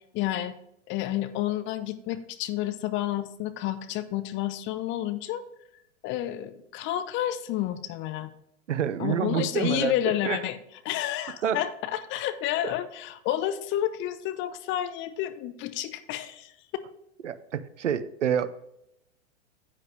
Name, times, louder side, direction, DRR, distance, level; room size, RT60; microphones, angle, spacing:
voice 1, 0.1-0.5 0.9-5.4 6.0-8.3 9.0-10.6 10.8-16.5, left 12 dB, 30° left, 11 dB, 0.8 m, -30 dB
voice 2, 8.7-10.0 10.2-10.4 11.4-11.6 12.6-12.7 17.2-18.5, right 8 dB, 75° right, 15 dB, 0.7 m, -27 dB
10.0 x 8.6 x 3.2 m, 0.81 s
figure-of-eight pair, 95°, 37 cm